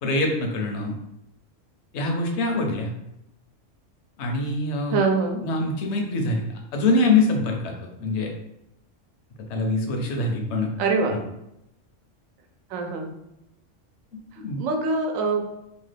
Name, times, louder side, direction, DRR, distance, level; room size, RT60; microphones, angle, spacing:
voice 1, 0.0-0.9 1.9-2.9 4.2-5.0 5.4-6.4 6.7-7.7 8.0-8.3 9.5-10.7 11.1-11.2 14.4-14.6, left 2 dB, 65° left, 2 dB, 0.9 m, -24 dB
voice 2, 4.9-5.4 10.8-11.1 12.7-13.1 14.6-15.4, right 4 dB, 85° right, 3 dB, 1.0 m, -23 dB
3.0 x 2.2 x 3.2 m, 0.84 s
omnidirectional pair, 1.3 m